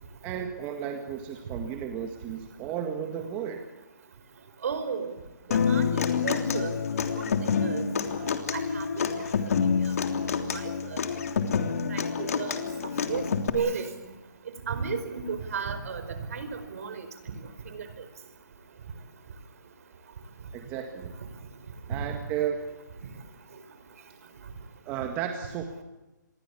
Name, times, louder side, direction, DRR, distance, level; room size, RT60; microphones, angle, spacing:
voice 1, 0.2-3.6 20.5-21.1 21.9-22.6 24.9-25.8, right 9 dB, 15° right, 5 dB, 1.8 m, -33 dB
voice 2, 4.6-5.1 5.7-6.7 7.2-7.8 8.2-9.1 9.5-9.6 10.5-10.6 10.9-11.0 11.9-12.5 13.0-13.2 13.5-14.1 14.7-16.9 17.7-17.8 21.9-22.0, right 6 dB, 50° right, 11 dB, 4.9 m, -33 dB
Human voice / Acoustic guitar, 5.5-13.5, left 6 dB, 50° left, 3.3 m, -27 dB
28.0 x 22.0 x 8.5 m, 1.1 s
hypercardioid pair, 165°, 10 cm